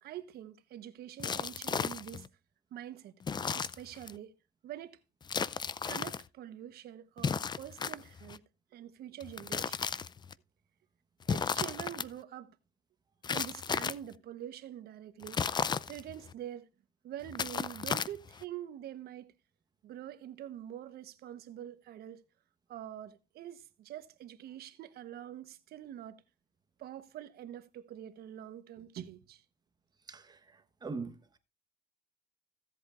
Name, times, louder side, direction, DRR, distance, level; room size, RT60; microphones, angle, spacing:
voice 1, 0.0-2.3 2.7-3.2 3.5-4.3 4.6-5.0 5.8-8.4 8.7-9.9 11.3-12.6 13.3-15.4 15.9-16.7 17.0-19.3 19.8-22.2 22.7-26.2 26.8-29.4, right 11 dB, 70° right, 1.1 m, -45 dB
sound 1, 1.2-2.3 3.2-4.2 5.2-6.2 7.2-8.4 9.2-10.3 11.2-12.1 13.2-14.1 15.2-16.3 17.2-18.4, left 6 dB, 25° left, 0.5 m, -34 dB
voice 2, 30.8-31.4, right 4 dB, 25° right, 1.2 m, -40 dB
16.0 x 8.0 x 2.5 m
cardioid pair, 110°, 17 cm